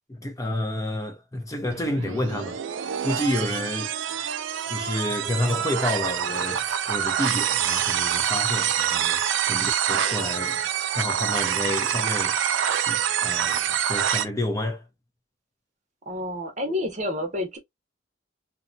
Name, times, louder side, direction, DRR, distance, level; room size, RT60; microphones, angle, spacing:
voice 1, 0.2-2.6 3.0-3.9 4.7-9.2 9.5-10.6 10.9-12.4 12.9-14.8, left 1 dB, 20° left, 0.6 m, -29 dB
sound 1, 1.7-14.3, right 9 dB, 80° right, 0.4 m, -26 dB
voice 2, 16.1-17.6, left 1 dB, 40° right, 0.8 m, -29 dB
2.8 x 2.2 x 2.6 m
head